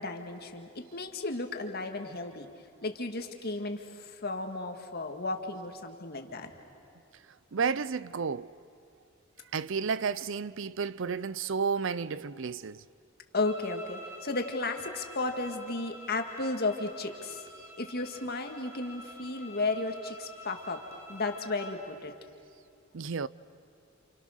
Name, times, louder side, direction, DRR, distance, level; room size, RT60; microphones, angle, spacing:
voice 1, 0.0-2.5 2.8-6.5 13.3-17.4 17.8-20.8 21.1-22.1, left 3 dB, 50° left, 1.9 m, -34 dB
voice 2, 7.5-8.5 9.5-12.8 22.9-23.3, right 5 dB, 65° right, 0.6 m, -32 dB
sound 1, 13.4-21.8, equal, 15° right, 2.8 m, -48 dB
29.0 x 28.0 x 6.6 m
head